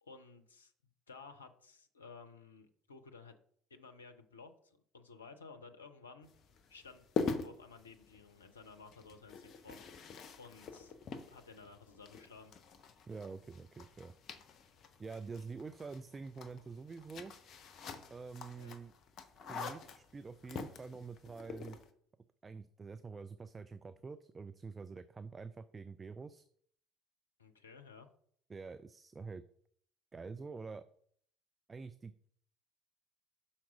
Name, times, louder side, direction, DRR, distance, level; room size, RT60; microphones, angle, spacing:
voice 1, 0.0-0.7 1.1-3.4 3.7-6.3 6.7-9.8 10.4-10.9 11.3-12.5 18.6-18.8 27.4-28.1, left 4 dB, 80° left, 6 dB, 0.5 m, -55 dB
sound 1, 6.2-21.9, left 5 dB, 45° left, 0.7 m, -45 dB
voice 2, 13.1-14.1 15.0-17.3 18.1-18.9 19.5-21.8 22.4-26.4 28.5-29.4 30.1-30.9 31.7-32.3, right 4 dB, 25° right, 12 dB, 0.4 m, -47 dB
5.9 x 4.2 x 6.1 m, 0.62 s
figure-of-eight pair, 55°, 0 cm